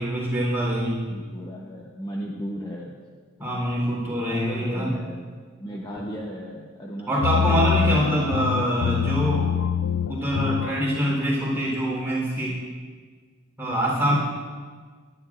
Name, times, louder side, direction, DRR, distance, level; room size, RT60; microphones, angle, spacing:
voice 1, 0.0-1.0 3.4-4.9 7.1-9.5 10.1-12.6 13.6-14.2, equal, 10° right, -4 dB, 3.7 m, -24 dB
voice 2, 1.1-2.9 4.3-5.3 5.6-8.0, equal, 20° left, -2 dB, 0.8 m, -36 dB
sound 1, 7.2-10.9, left 7 dB, 85° left, 0.4 m, -25 dB
19.0 x 11.0 x 2.5 m, 1.6 s
head